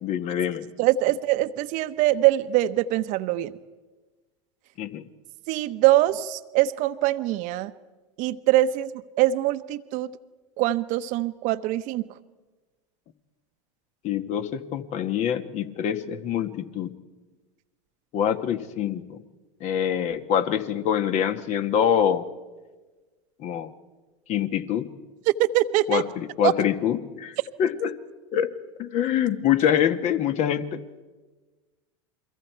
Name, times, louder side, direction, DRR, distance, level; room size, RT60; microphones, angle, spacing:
voice 1, 0.0-0.7 4.8-5.0 14.0-16.9 18.1-19.2 19.6-22.2 23.4-23.7 24.3-24.9 25.9-27.9 28.3-28.5 28.8-30.8, left 9 dB, 50° left, 9 dB, 1.5 m, -25 dB
voice 2, 0.8-3.5 5.5-7.7 8.2-8.9 9.2-10.1 10.6-12.1 25.5-26.0 26.4-26.5, right 15 dB, 55° right, 12 dB, 1.0 m, -23 dB
30.0 x 23.0 x 4.7 m, 1.3 s
hypercardioid pair, 95°, 16 cm